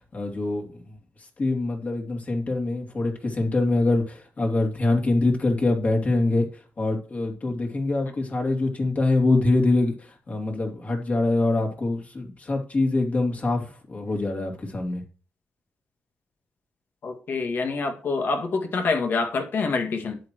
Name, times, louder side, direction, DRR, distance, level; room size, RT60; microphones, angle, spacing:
voice 1, 0.1-0.7 1.4-6.4 6.8-9.9 10.3-15.0, left 2 dB, 40° left, 1 dB, 2.9 m, -24 dB
voice 2, 17.0-20.2, left 4 dB, 65° left, 4 dB, 2.1 m, -26 dB
11.0 x 8.1 x 3.1 m, 0.38 s
cardioid pair, 80°, 4 cm